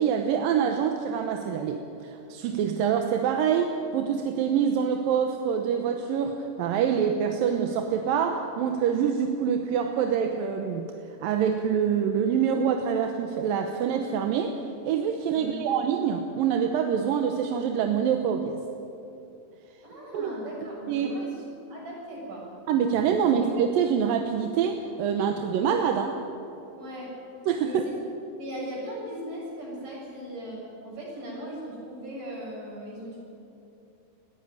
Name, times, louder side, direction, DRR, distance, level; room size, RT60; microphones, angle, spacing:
voice 1, 0.0-10.9 11.2-18.6 20.1-20.3 20.9-21.1 22.7-26.2 27.5-27.8, right 7 dB, 75° right, 4 dB, 2.6 m, -25 dB
voice 2, 19.8-22.5 23.2-23.4 26.7-27.2 27.6-28.0 28.4-33.2, right 1 dB, 55° right, -4 dB, 8.4 m, -38 dB
20.5 x 15.0 x 9.5 m, 2.8 s
omnidirectional pair, 4.4 m